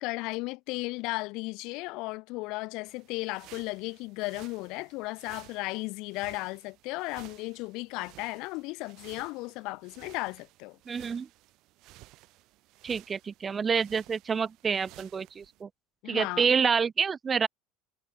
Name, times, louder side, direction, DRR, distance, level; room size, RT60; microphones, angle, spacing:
voice 1, 0.0-10.8 16.0-16.5, left 24 dB, 60° left, 0.8 m, -35 dB
sound 1, 2.9-15.6, right 19 dB, 60° right, 2.1 m, -55 dB
voice 2, 10.9-11.3 12.8-15.7 16.1-17.5, right 6 dB, 30° right, 0.7 m, -28 dB
hypercardioid pair, 80°, 0 cm